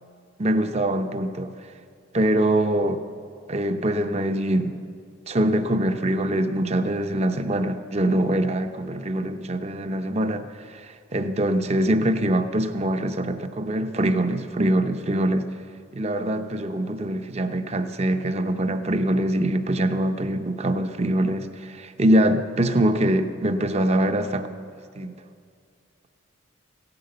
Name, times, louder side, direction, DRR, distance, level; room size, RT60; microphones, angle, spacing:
voice 1, 0.4-1.5 2.1-3.0 3.5-4.8 5.3-15.5 15.9-25.1, right 1 dB, 30° right, 9 dB, 0.7 m, -24 dB
16.0 x 11.0 x 7.8 m, 2.3 s
head